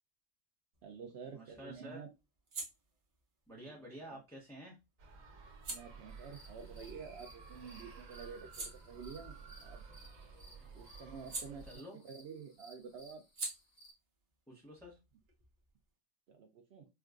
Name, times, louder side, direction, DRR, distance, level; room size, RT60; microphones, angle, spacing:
sound 1, 0.7-7.6 8.0-12.3 12.5-15.9, right 3 dB, 45° right, 1.0 m, -50 dB
voice 1, 0.8-2.1 3.7-4.2 5.7-9.8 10.7-13.2 16.3-16.9, right 6 dB, 65° right, 4 dB, 0.7 m, -49 dB
voice 2, 1.3-2.0 3.5-4.8 10.6-10.8 11.6-12.0 14.5-15.0, equal, 5° left, -4 dB, 0.8 m, -50 dB
sound 2, 5.0-11.7, right 4 dB, 85° right, 1.2 m, -53 dB
sound 3, 6.1-13.9, right 1 dB, 65° left, 1.8 m, -61 dB
4.5 x 2.3 x 2.4 m, 0.24 s
omnidirectional pair, 1.3 m